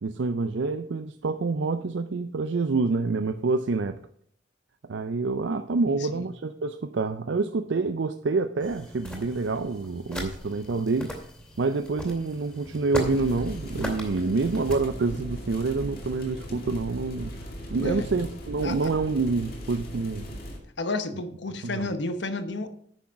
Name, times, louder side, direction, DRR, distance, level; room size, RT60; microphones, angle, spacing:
voice 1, 0.0-4.0 4.9-11.1 11.6-17.3 17.7-20.3 21.6-21.9, right 3 dB, 75° right, 9 dB, 0.5 m, -27 dB
voice 2, 5.9-6.3 17.8-18.1 18.6-18.8 20.8-22.7, left 2 dB, 70° left, 10 dB, 1.0 m, -31 dB
sound 1, 8.6-14.8, equal, 5° left, 2.4 m, -38 dB
sound 2, 13.0-20.6, equal, 55° left, 2.4 m, -38 dB
9.9 x 6.3 x 5.8 m, 0.65 s
head